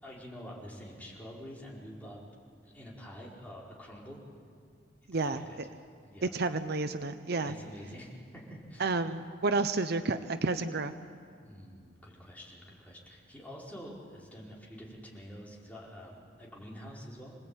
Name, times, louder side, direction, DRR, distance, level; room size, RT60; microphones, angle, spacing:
voice 1, 0.0-2.2 2.6-4.2 5.1-5.6 6.0-6.3 7.3-8.9 11.4-17.4, equal, 10° left, -5 dB, 5.0 m, -47 dB
voice 2, 5.1-5.4 6.3-7.5 8.8-10.9, right 3 dB, 60° right, 10 dB, 0.8 m, -30 dB
27.5 x 19.0 x 8.9 m, 2.2 s
head